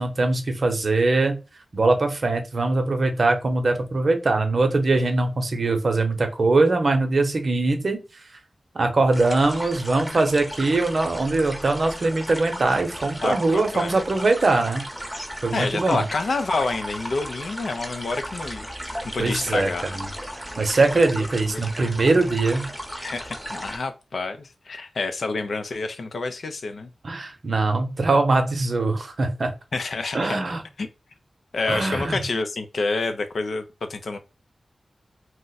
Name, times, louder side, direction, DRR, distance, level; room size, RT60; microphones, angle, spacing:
voice 1, 0.0-1.4 1.7-8.0 8.7-14.9 15.4-16.0 19.2-20.1 20.4-22.7 27.0-29.5 30.1-30.6 31.7-32.2, right 3 dB, 65° right, 0.7 m, -22 dB
sound 1, 9.1-23.8, equal, 5° left, 0.8 m, -35 dB
voice 2, 13.2-14.0 15.5-18.7 19.1-19.9 21.2-21.3 21.5-21.6 23.0-26.9 29.7-30.4 30.8-30.9 31.5-33.6 33.9-34.2, left 3 dB, 80° left, 0.5 m, -28 dB
2.4 x 2.1 x 3.9 m
cardioid pair, 50°, 0 cm